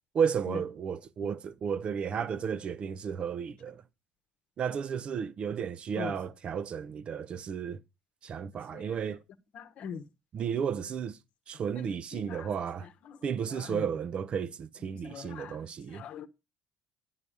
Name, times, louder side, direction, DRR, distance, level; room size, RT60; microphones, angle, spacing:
voice 1, 0.1-3.8 4.6-7.8 8.2-9.2 10.3-11.2 11.5-12.9 13.2-16.0, right 7 dB, 40° right, 0.6 m, -33 dB
voice 2, 9.5-10.1 11.8-12.5 13.1-13.2 13.5-13.9 14.9-15.6 15.9-16.3, left 7 dB, 50° left, 1.0 m, -42 dB
11.0 x 5.6 x 6.2 m
figure-of-eight pair, 55°, 3 cm